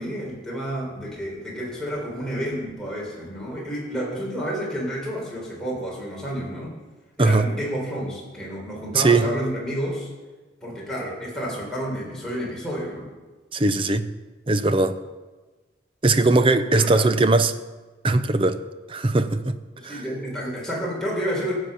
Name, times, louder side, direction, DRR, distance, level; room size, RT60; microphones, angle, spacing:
voice 1, 0.0-6.7 7.2-10.1 10.6-13.1 16.7-17.1 19.8-21.5, equal, 5° left, 3.8 m, -30 dB
voice 2, 8.9-9.3 13.5-14.1 14.5-15.0 16.0-17.5 18.0-18.6 18.9-19.6 19.8-20.0, right 2 dB, 30° right, 0.5 m, -19 dB
15.5 x 7.7 x 5.7 m
head